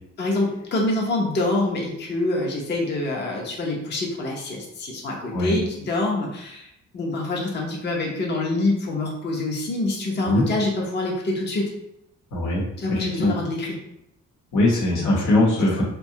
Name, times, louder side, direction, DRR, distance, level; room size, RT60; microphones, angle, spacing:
voice 1, 0.2-11.7 12.8-13.8 14.9-15.4 15.8-15.9, left 2 dB, 35° left, -1 dB, 0.6 m, -26 dB
voice 2, 12.3-12.6 12.9-13.3 14.5-15.8, left 1 dB, 80° left, -3 dB, 0.9 m, -21 dB
2.7 x 2.2 x 2.7 m, 0.80 s
cardioid pair, 90°, 30 cm